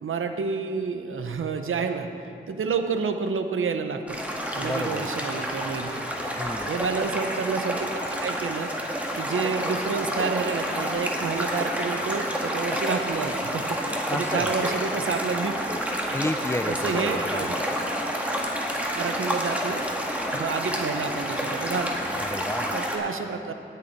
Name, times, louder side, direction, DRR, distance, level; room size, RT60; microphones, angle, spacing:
voice 1, 0.0-2.1 2.5-4.0 4.5-6.0 6.6-8.7 9.1-15.5 16.7-17.6 19.0-19.8 20.3-22.1 22.7-23.5, right 5 dB, 90° right, 7 dB, 0.7 m, -29 dB
sound 1, 4.1-23.0, equal, 5° right, 1.9 m, -29 dB
voice 2, 4.6-5.1 6.4-6.8 14.1-14.5 16.1-17.5 22.2-22.7, left 1 dB, 15° left, 11 dB, 0.4 m, -31 dB
18.0 x 6.9 x 4.4 m, 2.7 s
cardioid pair, 45°, 20 cm